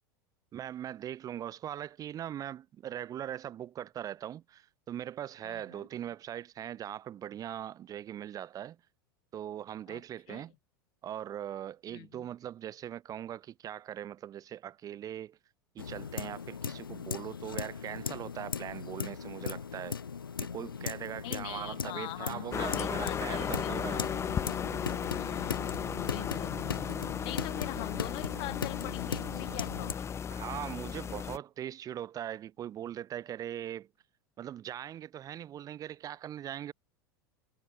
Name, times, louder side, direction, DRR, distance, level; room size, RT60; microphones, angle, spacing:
voice 1, 0.5-8.8 9.3-10.5 11.0-15.4 15.7-20.0 20.4-24.1 30.3-33.9 34.4-36.7, right 10 dB, 30° right, 1.2 m, -40 dB
voice 2, 5.4-5.9 9.9-10.0 10.3-10.4 11.9-12.3 21.2-24.1 25.1-25.8 26.1-26.6 27.2-30.2, left 25 dB, 45° left, 1.8 m, -43 dB
sound 1, 15.8-29.9, left 6 dB, 80° left, 0.9 m, -39 dB
sound 2, 22.5-31.4, left 7 dB, 25° left, 1.4 m, -35 dB
figure-of-eight pair, 80°, 12 cm